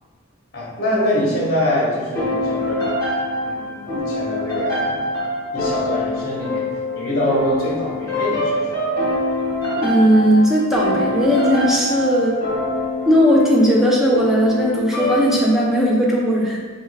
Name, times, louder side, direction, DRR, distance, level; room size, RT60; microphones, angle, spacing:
voice 1, 0.5-2.9 3.4-5.0 5.5-6.6 6.9-8.7, equal, 50° left, -5 dB, 0.9 m, -24 dB
sound 1, 2.1-15.8, left 1 dB, 20° left, 1.0 m, -24 dB
voice 2, 9.8-12.4 13.1-16.6, equal, ahead, -4 dB, 0.5 m, -17 dB
4.4 x 2.2 x 3.2 m, 1.5 s
head